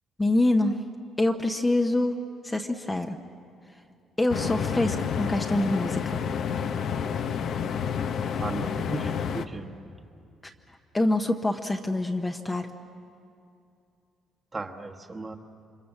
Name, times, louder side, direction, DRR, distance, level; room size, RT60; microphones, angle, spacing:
voice 1, 0.2-0.8 1.2-2.2 2.4-3.2 4.2-6.2 10.9-12.7, left 2 dB, 15° left, 4 dB, 0.9 m, -25 dB
sound 1, 4.3-9.5, left 7 dB, 55° left, 0.9 m, -29 dB
voice 2, 8.3-9.7 14.5-15.4, right 3 dB, 20° right, 3 dB, 1.3 m, -36 dB
29.0 x 25.0 x 7.3 m, 2.5 s
cardioid pair, 145°, 0 cm